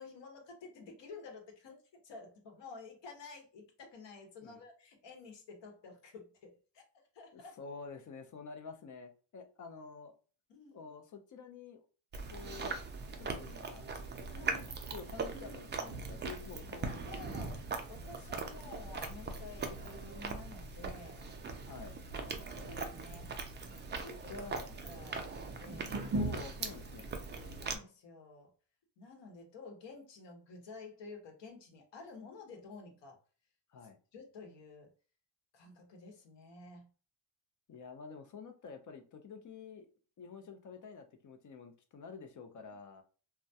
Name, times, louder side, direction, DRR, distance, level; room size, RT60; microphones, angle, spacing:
voice 1, 0.0-6.8 7.1-7.6 10.5-10.8 14.3-14.7 16.8-17.6 17.9-21.2 22.1-23.4 24.0-26.0 27.4-28.5 29.0-33.2 34.1-34.9 35.5-36.9, left 4 dB, 60° left, 1.0 m, -51 dB
voice 2, 7.3-10.1 10.7-11.8 12.3-12.8 13.1-13.9 14.4-17.3 21.7-22.0 23.9-24.7 26.1-27.1 33.7-34.0 37.7-39.9 40.2-43.0, left 5 dB, 40° left, 0.6 m, -49 dB
Chewing mastication, 12.1-27.8, right 4 dB, 25° right, 0.4 m, -40 dB
2.3 x 2.1 x 2.7 m
supercardioid pair, 80°, 49 cm